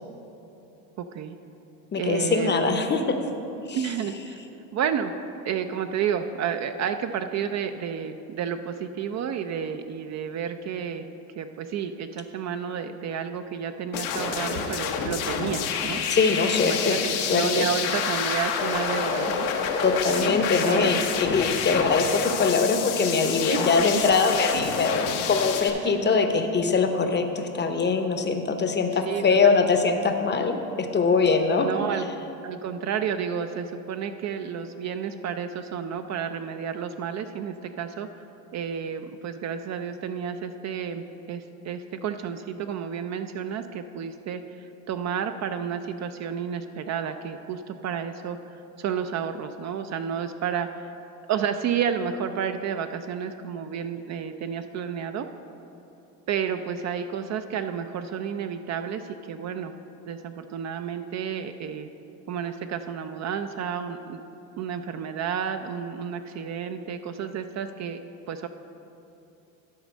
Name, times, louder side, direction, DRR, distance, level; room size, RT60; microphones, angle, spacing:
voice 1, 1.0-1.4 2.0-2.8 3.7-4.4 4.7-5.1 5.4-11.1 11.4-16.0 16.6-19.5 20.2-20.4 20.6-21.0 23.5-24.0 26.0-26.1 29.0-29.6 31.6-32.1 32.4-38.1 38.5-50.9 51.3-55.3 56.3-59.7 60.1-61.9 62.3-64.2 64.6-68.0 68.3-68.5, right 7 dB, 40° right, 8 dB, 0.4 m, -31 dB
voice 2, 1.9-3.2 3.7-3.9 16.1-17.7 19.8-31.7, left 4 dB, 25° left, 6 dB, 0.7 m, -23 dB
sound 1, 13.9-25.7, left 6 dB, 85° left, 0.9 m, -28 dB
11.5 x 4.1 x 6.2 m, 2.9 s
supercardioid pair, 95°, 41 cm